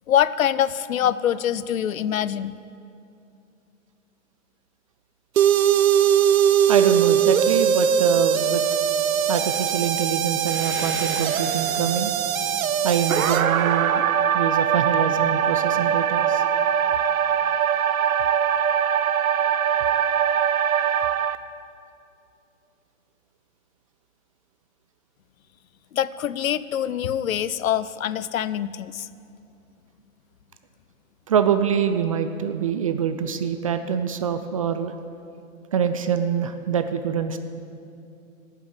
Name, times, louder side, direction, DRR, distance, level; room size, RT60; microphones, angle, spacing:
voice 1, 0.1-2.6 25.9-29.1, left 10 dB, 75° left, 17 dB, 0.6 m, -24 dB
sound 1, 5.4-21.4, right 8 dB, 80° right, 0.7 m, -21 dB
voice 2, 6.7-8.6 9.3-12.1 12.8-16.4 31.3-34.9 35.7-37.4, right 7 dB, 25° right, 9 dB, 0.3 m, -25 dB
sound 2, 10.4-15.5, equal, 5° right, 2.4 m, -40 dB
13.5 x 8.2 x 8.0 m, 2.6 s
hypercardioid pair, 120°, 41 cm